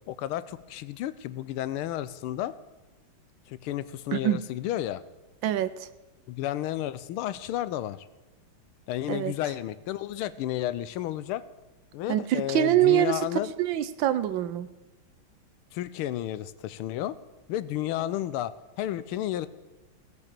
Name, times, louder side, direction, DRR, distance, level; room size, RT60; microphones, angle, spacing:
voice 1, 0.1-2.5 3.5-5.0 6.3-8.1 8.9-11.4 11.9-13.5 15.7-17.2 17.5-18.5 18.8-19.5, left 13 dB, 90° left, 16 dB, 1.5 m, -32 dB
voice 2, 4.1-4.4 5.4-5.9 9.1-9.3 12.1-13.2 13.6-14.7, right 12 dB, 75° right, 14 dB, 1.2 m, -24 dB
17.0 x 6.9 x 6.7 m, 1.1 s
omnidirectional pair, 2.3 m